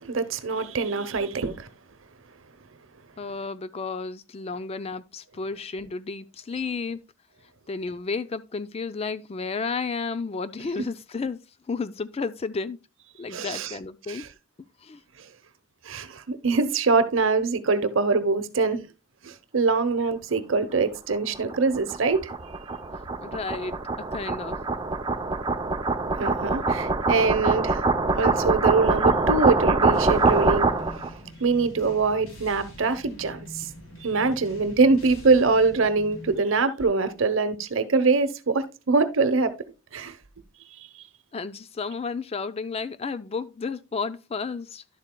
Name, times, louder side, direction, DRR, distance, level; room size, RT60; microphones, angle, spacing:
voice 1, 0.0-1.7 13.3-13.8 14.1-14.3 15.8-18.8 19.2-22.3 26.2-27.8 28.2-30.7 31.4-33.7 34.0-39.5 39.9-40.2, right 4 dB, 65° right, 0.9 m, -23 dB
voice 2, 3.2-7.0 7.7-11.4 11.7-12.8 13.2-14.2 14.8-15.0 23.2-23.8 24.1-24.6 41.3-44.8, left 4 dB, 30° left, 0.4 m, -32 dB
sound 1, 21.1-31.1, right 3 dB, 20° right, 0.6 m, -24 dB
sound 2, 29.9-36.4, equal, 75° left, 3.2 m, -44 dB
11.0 x 7.4 x 2.2 m
head